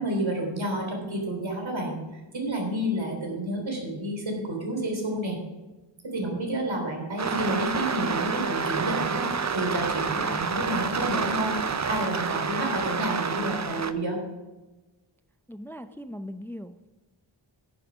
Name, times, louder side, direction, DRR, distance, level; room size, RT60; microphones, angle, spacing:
voice 1, 0.0-2.0 2.3-5.4 6.0-11.5 11.9-14.2, right 1 dB, 75° right, 0 dB, 3.5 m, -30 dB
sound 1, 7.2-13.9, right 5 dB, 35° right, 0.6 m, -28 dB
voice 2, 15.5-16.9, equal, 5° left, 10 dB, 0.4 m, -39 dB
11.0 x 8.1 x 5.1 m, 1.1 s
wide cardioid pair, 55°, 47 cm